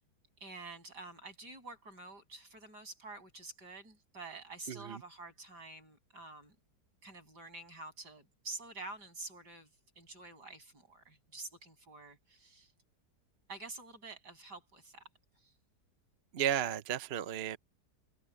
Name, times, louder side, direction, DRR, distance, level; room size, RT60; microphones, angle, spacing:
voice 1, 0.4-6.6 7.0-9.7 10.0-12.7 13.5-15.0 15.4-15.5, right 3 dB, 70° right, 8.0 m, -48 dB
voice 2, 4.7-5.0 16.3-17.6, right 10 dB, 50° right, 0.7 m, -34 dB
omnidirectional pair, 1.9 m